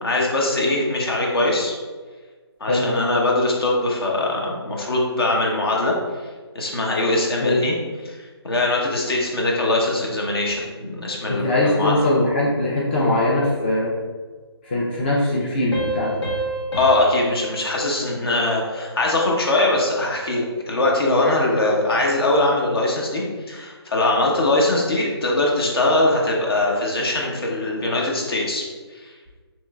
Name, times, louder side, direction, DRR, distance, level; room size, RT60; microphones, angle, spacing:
voice 1, 0.0-1.7 2.6-5.9 6.5-7.7 8.1-8.2 8.4-12.0 16.7-28.6 28.9-29.1, left 2 dB, 60° left, -2 dB, 1.0 m, -21 dB
voice 2, 11.3-13.9 14.6-16.2, left 1 dB, 25° left, -6 dB, 0.4 m, -21 dB
sound 1, 15.7-19.0, right 2 dB, 90° left, 1.3 m, -29 dB
4.4 x 3.1 x 2.3 m, 1.4 s
figure-of-eight pair, 160°, 14 cm